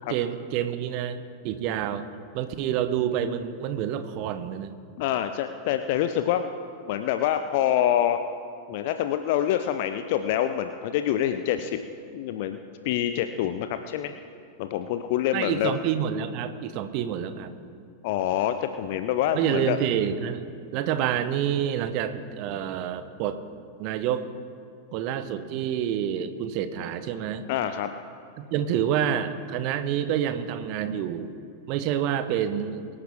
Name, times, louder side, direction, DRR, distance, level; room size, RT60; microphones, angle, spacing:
voice 1, 0.1-1.2 1.4-2.0 2.3-4.8 15.3-17.5 19.3-20.4 20.7-23.4 23.8-24.3 24.9-27.5 28.4-31.3 31.7-32.9, right 9 dB, 45° right, 11 dB, 0.9 m, -28 dB
voice 2, 5.0-6.5 6.9-8.2 8.7-11.8 12.1-12.6 12.8-14.1 14.6-15.8 18.0-19.8 27.5-27.9, left 11 dB, 50° left, 9 dB, 0.5 m, -26 dB
23.0 x 9.7 x 3.6 m, 2.6 s
figure-of-eight pair, 90°, 0 cm